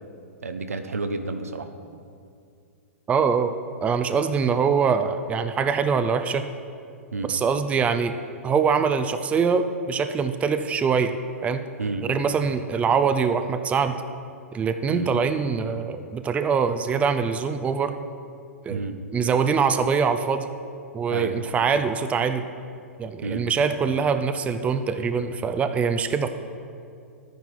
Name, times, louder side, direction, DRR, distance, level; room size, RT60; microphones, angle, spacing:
voice 1, 0.4-1.7 7.1-7.3 11.8-12.1 14.9-15.1 18.7-19.0 21.1-21.4 23.2-23.5, right 3 dB, 80° right, 8 dB, 0.9 m, -30 dB
voice 2, 3.1-3.5 3.8-6.5 7.2-8.1 8.4-11.2 11.4-11.6 12.1-14.0 14.5-17.9 18.6-18.8 19.1-20.5 20.9-22.4 23.0-26.3, right 6 dB, 15° right, 9 dB, 0.5 m, -23 dB
12.0 x 9.2 x 4.7 m, 2.4 s
figure-of-eight pair, 110°, 8 cm